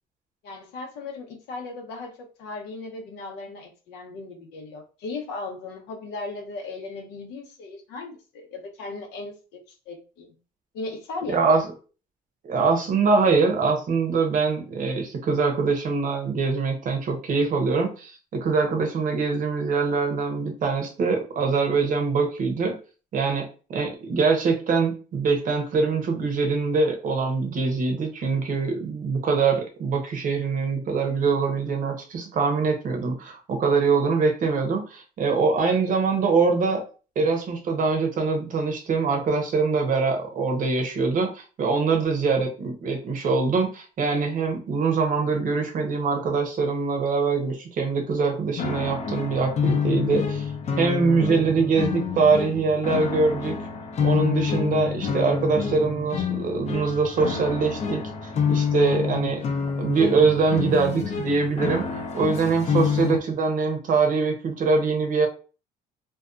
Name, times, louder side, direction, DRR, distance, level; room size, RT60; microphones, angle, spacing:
voice 1, 0.4-10.4 10.7-11.5, left 3 dB, 90° left, 3 dB, 0.7 m, -37 dB
voice 2, 11.3-11.7 12.4-22.7 23.1-36.8 37.2-50.5 50.8-53.6 54.0-59.4 59.8-65.3, right 4 dB, 50° right, 4 dB, 0.8 m, -23 dB
sound 1, 48.6-63.2, left 6 dB, 40° left, 0.5 m, -27 dB
2.7 x 2.3 x 2.3 m, 0.36 s
cardioid pair, 110°, 17 cm